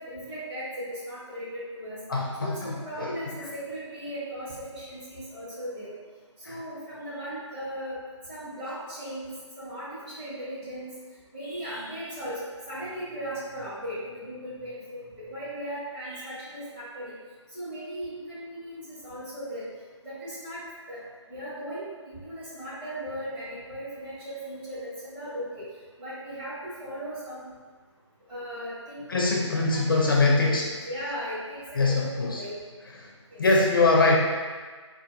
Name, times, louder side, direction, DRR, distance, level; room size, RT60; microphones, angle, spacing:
voice 1, 0.0-2.0 2.4-5.9 6.4-8.0 8.3-10.9 11.3-17.1 17.5-19.6 20.0-20.6 20.9-21.0 21.3-25.7 26.0-27.5 28.3-32.6 33.3-33.4, equal, 15° right, -11 dB, 1.0 m, -37 dB
voice 2, 2.1-3.1 6.4-6.6 29.1-30.6 31.8-32.4 33.4-34.2, left 3 dB, 45° left, -2 dB, 0.4 m, -23 dB
4.3 x 2.4 x 2.4 m, 1.5 s
figure-of-eight pair, 150°, 16 cm